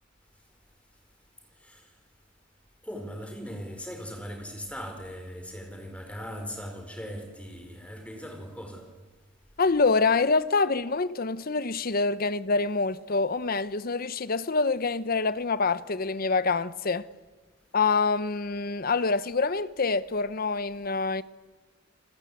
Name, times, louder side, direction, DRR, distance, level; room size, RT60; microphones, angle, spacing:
voice 1, 2.8-8.9, equal, 5° left, 4.7 m, -39 dB
voice 2, 9.6-17.1 17.7-21.2, left 4 dB, 50° left, 0.9 m, -26 dB
29.5 x 21.0 x 8.5 m
head